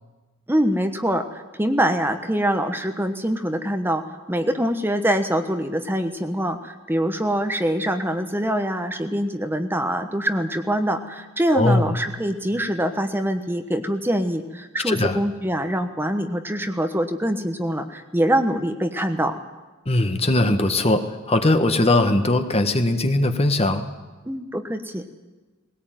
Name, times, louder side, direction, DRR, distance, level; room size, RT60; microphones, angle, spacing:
voice 1, 0.5-4.0 4.3-19.4 24.2-25.0, equal, 10° right, 6 dB, 1.2 m, -24 dB
voice 2, 11.5-11.9 14.9-15.2 19.8-23.9, left 2 dB, 30° left, 7 dB, 1.5 m, -20 dB
20.0 x 18.5 x 9.2 m, 1.2 s
head